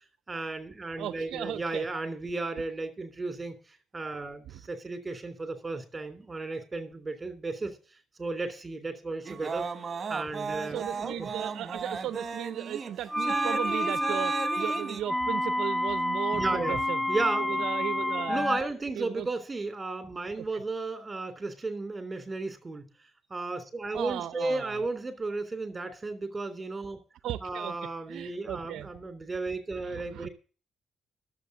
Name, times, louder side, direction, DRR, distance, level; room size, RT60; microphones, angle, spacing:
voice 1, 0.3-7.7 8.2-9.6 10.1-11.3 16.3-16.8 17.1-17.7 18.3-22.9 23.3-27.0 27.4-30.3, right 3 dB, 25° right, 3.4 m, -34 dB
voice 2, 1.0-1.9 4.5-4.6 10.7-17.0 17.4-18.4 19.0-19.3 20.4-20.5 23.9-24.8 27.2-27.8 28.1-28.9 29.8-30.3, right 11 dB, 80° right, 0.6 m, -36 dB
sound 1, 9.2-15.0, right 5 dB, 45° right, 1.3 m, -35 dB
sound 2, 13.1-18.6, left 1 dB, 5° left, 0.6 m, -29 dB
11.0 x 7.5 x 8.4 m
cardioid pair, 75°, 0 cm